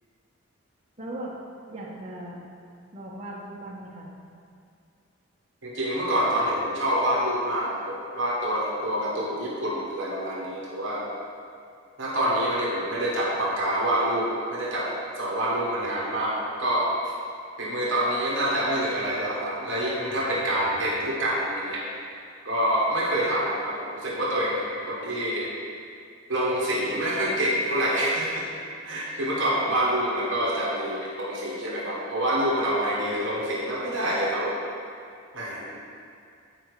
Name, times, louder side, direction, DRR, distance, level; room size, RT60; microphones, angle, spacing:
voice 1, 1.0-1.3 1.7-2.4 2.9-4.1, right 1 dB, 30° right, -5 dB, 1.2 m, -38 dB
voice 2, 5.6-11.0 12.0-14.9 15.2-16.9 17.6-21.8 22.4-25.5 26.3-28.4 28.8-34.6 35.3-35.8, right 1 dB, 60° right, -5 dB, 1.4 m, -26 dB
8.8 x 4.6 x 4.8 m, 2.4 s
head